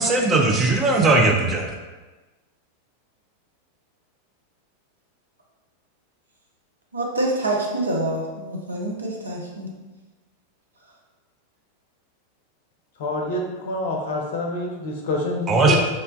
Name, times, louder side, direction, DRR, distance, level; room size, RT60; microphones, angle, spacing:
voice 1, 0.0-1.7 15.5-15.8, right 2 dB, 25° right, 0 dB, 0.4 m, -18 dB
voice 2, 6.9-9.7, right 1 dB, 75° right, -1 dB, 0.5 m, -26 dB
voice 3, 13.0-15.8, left 2 dB, 55° left, 0 dB, 0.5 m, -27 dB
3.0 x 2.1 x 2.5 m, 1.2 s
figure-of-eight pair, 90°, 0 cm